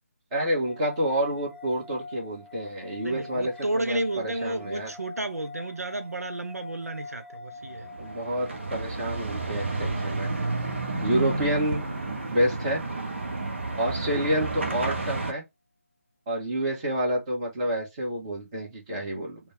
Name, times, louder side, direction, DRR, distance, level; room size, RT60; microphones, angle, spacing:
voice 1, 0.3-4.9 8.0-10.3 11.0-11.9 12.3-12.8 13.8-15.4 16.3-19.4, equal, 20° right, 1.5 m, -28 dB
sound 1, 0.6-12.0, left 3 dB, ahead, 0.7 m, -46 dB
voice 2, 3.0-7.9, right 2 dB, 80° right, 0.6 m, -32 dB
sound 2, 7.6-15.3, right 3 dB, 50° right, 0.8 m, -31 dB
4.0 x 2.3 x 3.5 m
figure-of-eight pair, 155°, 8 cm